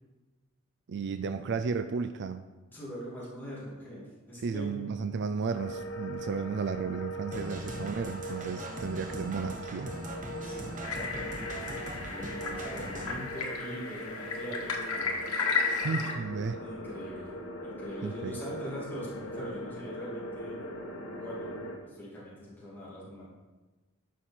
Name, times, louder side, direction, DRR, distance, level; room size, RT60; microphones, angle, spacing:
voice 1, 0.9-2.4 4.4-9.9 15.7-16.6 18.0-18.4, right 5 dB, 55° right, 10 dB, 0.4 m, -33 dB
voice 2, 2.7-4.7 10.4-15.2 16.5-20.6 21.2-23.2, equal, 10° left, -8 dB, 2.7 m, -43 dB
sound 1, 5.5-21.8, equal, 65° left, 1.4 m, -41 dB
sound 2, 7.3-13.1, right 1 dB, 40° right, 1.1 m, -41 dB
sound 3, 10.8-16.1, left 4 dB, 85° left, 1.5 m, -34 dB
13.0 x 5.7 x 4.4 m, 1.2 s
head